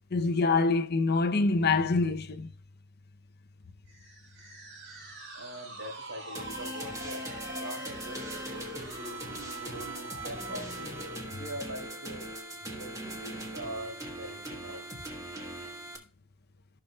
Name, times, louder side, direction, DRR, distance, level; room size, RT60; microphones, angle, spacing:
voice 1, 0.1-2.5, left 3 dB, 45° left, 0.6 m, -25 dB
sound 1, 3.9-11.3, right 1 dB, 50° right, 2.7 m, -44 dB
voice 2, 5.3-9.2 9.6-11.0 11.3-12.3 12.6-14.9, right 1 dB, 75° right, 4.1 m, -43 dB
sound 2, 6.3-16.0, right 1 dB, 15° right, 1.3 m, -40 dB
15.0 x 5.8 x 2.3 m
head